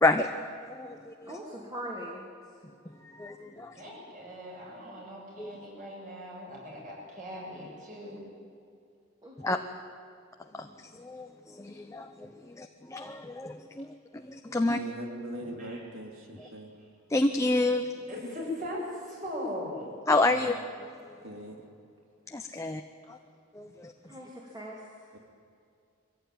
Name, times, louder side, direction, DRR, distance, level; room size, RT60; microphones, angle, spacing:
voice 1, 0.0-1.3 3.0-3.8 5.4-5.6 9.4-9.6 10.5-10.7 11.0-14.8 17.1-17.9 20.1-20.5 22.3-22.8 23.1-23.2 23.5-23.9, left 2 dB, 15° left, 5 dB, 0.7 m, -29 dB
voice 2, 1.2-2.3 9.2-9.7 24.1-25.1, equal, 20° right, -3 dB, 2.8 m, -41 dB
voice 3, 3.7-8.3 15.6-15.8 18.1-20.0, left 1 dB, 40° right, -3 dB, 7.3 m, -39 dB
voice 4, 14.5-16.7 20.2-20.6 21.2-21.6 25.1-25.2, right 1 dB, 75° right, 3 dB, 3.2 m, -41 dB
23.0 x 16.0 x 9.4 m, 2.4 s
head